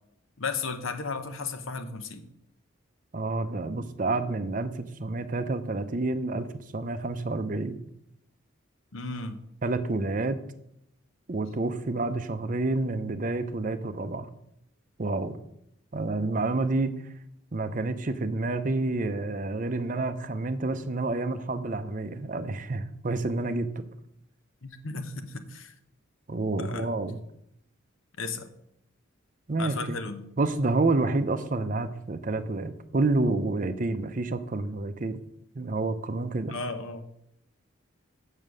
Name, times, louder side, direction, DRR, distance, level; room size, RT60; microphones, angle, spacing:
voice 1, 0.4-2.2 8.9-9.4 24.6-25.7 26.6-26.9 28.2-28.5 29.6-30.2 36.5-37.0, left 4 dB, 75° left, 9 dB, 0.9 m, -34 dB
voice 2, 3.1-6.5 6.7-7.8 9.6-10.4 11.3-14.3 15.0-15.4 15.9-16.9 17.5-23.8 26.3-27.2 29.5-30.0 30.4-35.2 35.6-36.5, right 2 dB, 40° right, 10 dB, 0.6 m, -29 dB
7.1 x 6.5 x 6.3 m, 0.76 s
head